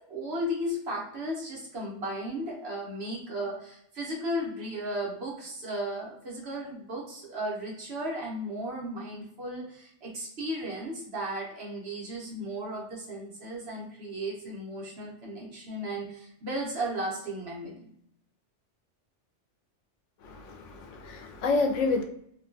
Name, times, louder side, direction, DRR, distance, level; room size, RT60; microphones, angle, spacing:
voice 1, 0.0-17.9, equal, 60° right, -3 dB, 1.1 m, -35 dB
voice 2, 20.2-22.0, left 3 dB, 90° left, 4 dB, 0.9 m, -29 dB
2.9 x 2.2 x 2.5 m, 0.70 s
omnidirectional pair, 1.2 m